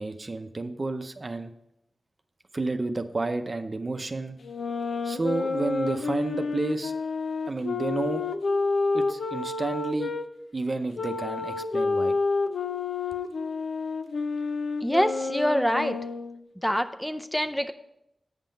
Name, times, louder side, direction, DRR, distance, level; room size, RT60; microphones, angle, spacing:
voice 1, 0.0-1.5 2.5-4.4 5.0-6.9 7.5-8.2 8.9-10.1 10.5-12.1, right 3 dB, 45° right, 8 dB, 0.6 m, -30 dB
sound 1, 4.4-10.3 11.0-16.4, left 4 dB, 85° left, 0.5 m, -29 dB
voice 2, 14.8-16.0 16.6-17.7, equal, 5° left, 8 dB, 0.5 m, -25 dB
8.1 x 5.7 x 5.2 m, 0.84 s
cardioid pair, 50°, 0 cm